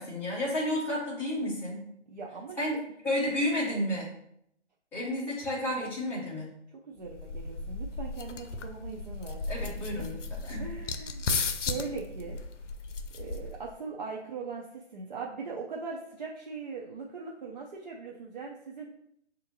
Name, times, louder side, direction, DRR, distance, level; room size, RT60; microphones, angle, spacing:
voice 1, 0.0-1.8 2.6-4.1 4.9-6.5 9.5-10.2 10.4-10.6, left 1 dB, 5° left, -9 dB, 0.9 m, -31 dB
voice 2, 2.1-2.7 6.9-9.5 10.0-10.1 10.6-12.4 13.1-18.9, right 4 dB, 40° right, -2 dB, 0.5 m, -40 dB
sound 1, 7.0-13.7, left 4 dB, 80° left, 0.6 m, -35 dB
6.4 x 2.5 x 2.8 m, 0.73 s
hypercardioid pair, 145°, 35 cm